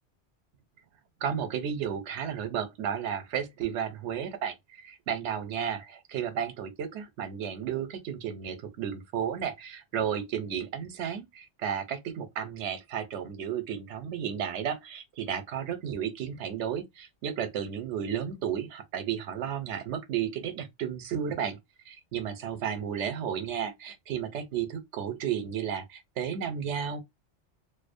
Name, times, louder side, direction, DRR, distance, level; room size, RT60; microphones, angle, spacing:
voice 1, 1.2-21.6 21.9-27.0, right 8 dB, 80° right, 0.9 m, -33 dB
2.5 x 2.0 x 2.5 m
omnidirectional pair, 1.2 m